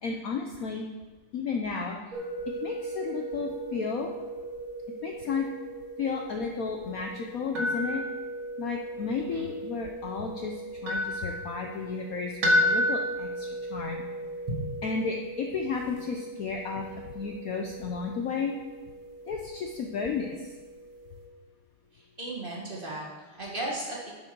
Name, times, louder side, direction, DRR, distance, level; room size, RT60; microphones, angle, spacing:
voice 1, 0.0-0.9 1.3-2.0 2.6-4.1 5.0-5.5 6.0-8.0 8.6-14.0 14.8-18.6 19.3-20.4, left 5 dB, 80° left, 2 dB, 0.7 m, -33 dB
sound 1, 2.1-21.2, equal, 70° right, 2.5 m, -34 dB
voice 2, 21.9-24.1, right 1 dB, 25° right, -4 dB, 1.8 m, -36 dB
11.0 x 6.1 x 4.6 m, 1.3 s
omnidirectional pair, 2.3 m